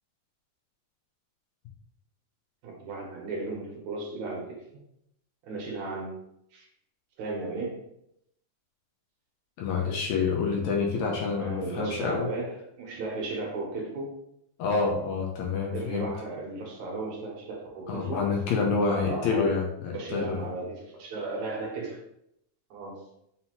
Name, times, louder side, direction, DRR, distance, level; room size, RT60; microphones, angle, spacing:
voice 1, 2.6-4.6 5.4-6.2 6.5-6.7 7.2-7.9 11.4-14.2 15.7-18.2 18.9-19.6 19.9-22.0 22.7-23.1, right 3 dB, 70° right, -1 dB, 2.0 m, -35 dB
voice 2, 9.6-12.3 14.6-16.1 17.9-20.4, left 4 dB, 80° left, 0 dB, 1.9 m, -27 dB
5.5 x 2.7 x 2.9 m, 0.76 s
omnidirectional pair, 3.6 m